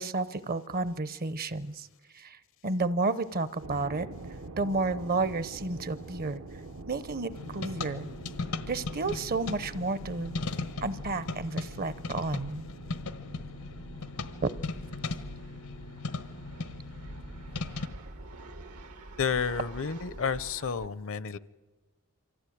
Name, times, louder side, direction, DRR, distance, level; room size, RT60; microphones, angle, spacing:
voice 1, 0.0-1.9 2.1-2.4 2.6-4.1 4.6-6.4 6.9-8.1 8.7-10.3 10.8-12.7 14.4-14.5, right 3 dB, 40° right, 16 dB, 0.8 m, -31 dB
sound 1, 3.6-18.8, right 3 dB, 70° right, 1.0 m, -47 dB
sound 2, 5.5-20.9, right 1 dB, 85° right, 2.2 m, -48 dB
sound 3, 7.3-17.9, left 3 dB, 90° left, 1.3 m, -38 dB
voice 2, 19.2-21.4, left 6 dB, 60° left, 18 dB, 0.7 m, -31 dB
24.5 x 15.0 x 9.3 m, 1.3 s
head